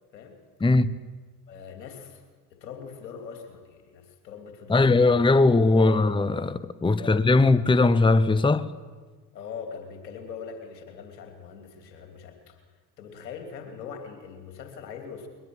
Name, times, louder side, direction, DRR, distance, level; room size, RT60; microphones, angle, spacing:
voice 1, 0.6-1.0 4.7-8.7, left 3 dB, 10° left, 0.9 m, -20 dB
voice 2, 1.5-2.2 2.5-5.2 5.7-6.1 6.8-7.2 9.3-12.6 13.0-15.3, left 6 dB, 90° left, 3.2 m, -41 dB
22.0 x 21.0 x 7.9 m
hypercardioid pair, 65°, 49 cm